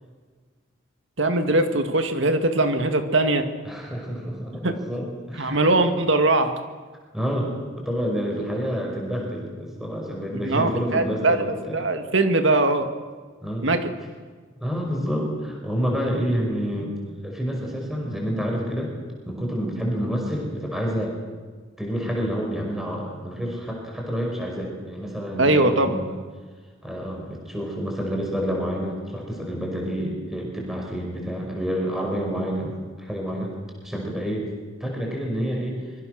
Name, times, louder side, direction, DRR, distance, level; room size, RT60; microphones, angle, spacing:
voice 1, 1.2-3.5 4.6-4.8 5.4-6.5 10.4-11.4 11.7-12.9 13.6-13.9 25.4-25.9, right 2 dB, 65° right, 7 dB, 2.0 m, -21 dB
voice 2, 3.6-5.8 7.1-11.9 13.4-13.7 14.6-17.0 17.2-18.9 19.2-21.1 21.8-26.2 26.8-32.7 33.0-33.5 33.8-34.5 34.8-35.8, equal, ahead, -1 dB, 5.3 m, -28 dB
25.5 x 23.5 x 6.6 m, 1.5 s
head